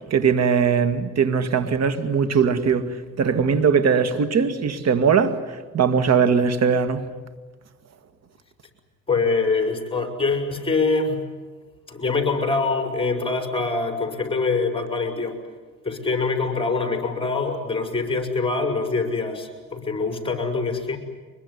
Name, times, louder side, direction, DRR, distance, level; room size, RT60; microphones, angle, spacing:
voice 1, 0.1-7.0, right 6 dB, 60° right, 2.2 m, -20 dB
voice 2, 9.1-11.2 11.9-15.3 15.8-21.0, left 4 dB, 20° left, 5.6 m, -24 dB
24.5 x 22.5 x 9.8 m
cardioid pair, 90°, 30 cm